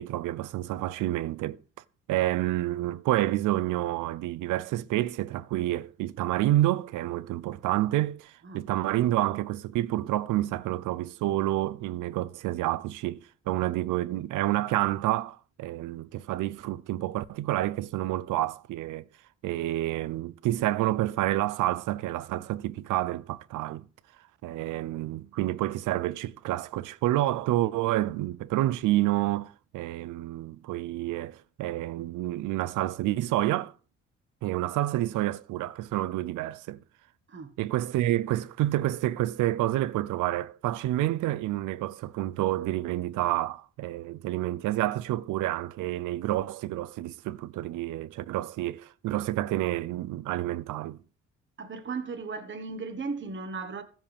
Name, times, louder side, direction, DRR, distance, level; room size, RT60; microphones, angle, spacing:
voice 1, 0.0-1.6 2.1-19.1 19.4-23.9 24.4-33.7 34.4-36.8 37.6-51.0, right 15 dB, 85° right, 0.6 m, -29 dB
voice 2, 51.6-53.8, right 4 dB, 40° right, 1.4 m, -36 dB
15.0 x 7.4 x 3.5 m
cardioid pair, 90°, 30 cm